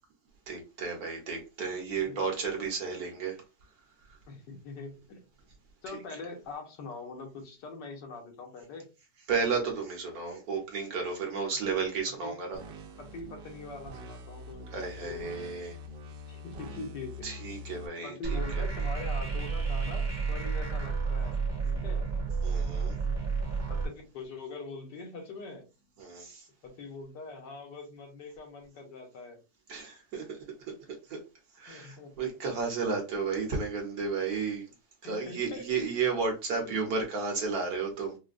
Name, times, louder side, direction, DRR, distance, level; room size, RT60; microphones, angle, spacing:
voice 1, 0.5-3.4 9.3-12.6 14.7-15.8 17.2-18.6 22.4-22.9 26.0-26.5 29.7-30.4 30.7-30.8 31.1-31.2 31.6-34.6 35.0-38.2, right 5 dB, 60° right, 1 dB, 1.5 m, -33 dB
voice 2, 4.3-5.2 5.8-8.9 12.1-12.3 13.0-15.2 16.3-17.2 18.0-22.1 23.0-23.2 23.7-25.7 26.6-29.4 31.7-32.3 35.0-35.8 36.1-36.2 36.6-36.8, left 3 dB, 80° left, 2 dB, 1.6 m, -43 dB
sound 1, 12.5-17.9, left 1 dB, 80° right, 1.4 m, -45 dB
sound 2, 18.2-23.8, right 5 dB, 15° right, 0.7 m, -31 dB
4.8 x 2.2 x 2.5 m, 0.29 s
omnidirectional pair, 1.9 m